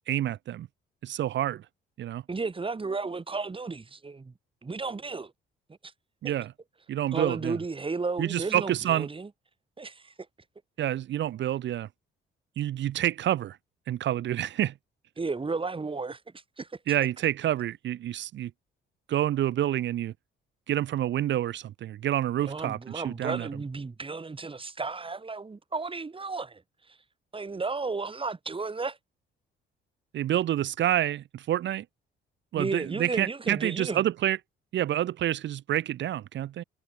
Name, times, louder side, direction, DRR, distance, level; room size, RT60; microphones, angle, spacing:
voice 1, 0.1-0.7 1.0-1.6 2.0-2.2 6.2-6.5 6.9-7.6 8.2-9.1 10.8-11.9 12.6-13.6 13.9-14.7 16.9-18.5 19.1-20.1 20.7-23.5 30.1-31.8 32.5-34.4 34.7-36.6, right 12 dB, 65° right, 0.9 m, -28 dB
voice 2, 2.3-4.3 4.6-5.3 5.8-5.9 7.1-9.3 9.8-10.1 15.2-16.2 16.6-16.7 22.4-26.6 27.3-29.0 32.6-34.0, right 4 dB, 25° right, 5.6 m, -33 dB
cardioid pair, 90°, 20 cm